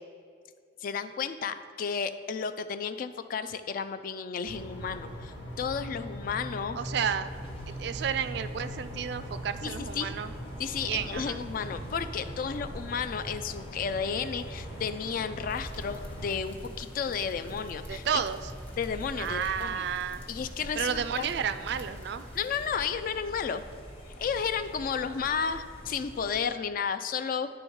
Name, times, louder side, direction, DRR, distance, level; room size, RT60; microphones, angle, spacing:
voice 1, 0.8-6.8 9.6-10.1 10.6-18.0 18.8-19.9 20.3-21.3 22.4-23.6 24.1-27.5, left 6 dB, 50° left, 10 dB, 0.3 m, -32 dB
sound 1, 4.4-16.4, equal, 75° left, 1.7 m, -41 dB
voice 2, 6.7-7.3 7.7-10.3 10.8-11.4 17.9-18.5 19.2-20.2 20.8-22.3, right 8 dB, 60° right, 12 dB, 0.3 m, -31 dB
sound 2, 7.2-26.5, equal, 30° left, 1.1 m, -46 dB
sound 3, 15.5-22.7, equal, 10° left, 0.8 m, -47 dB
10.5 x 3.5 x 4.6 m, 2.2 s
head